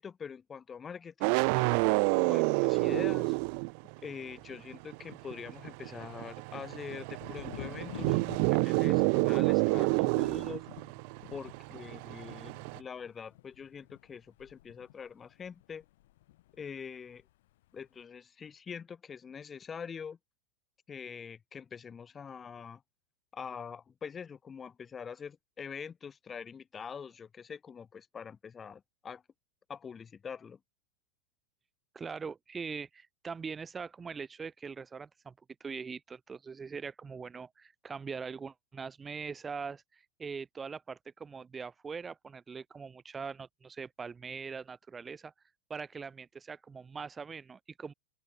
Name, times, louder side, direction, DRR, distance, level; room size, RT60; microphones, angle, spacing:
voice 1, 0.0-3.4 4.0-8.2 8.5-10.6 11.3-15.8 16.6-17.2 17.7-20.2 20.9-22.8 23.3-29.2 29.7-30.6, left 6 dB, 10° left, 3.7 m, -44 dB
sound 1, 1.2-4.1 4.3-12.8, right 40 dB or more, 35° right, 0.7 m, -29 dB
Thunder, 7.2-16.9 17.1-17.8, left 16 dB, 50° left, 5.0 m, -50 dB
voice 2, 31.9-35.3 35.6-45.3 45.7-47.9, right 5 dB, 10° right, 3.5 m, -42 dB
open air
supercardioid pair, 175°, 0 cm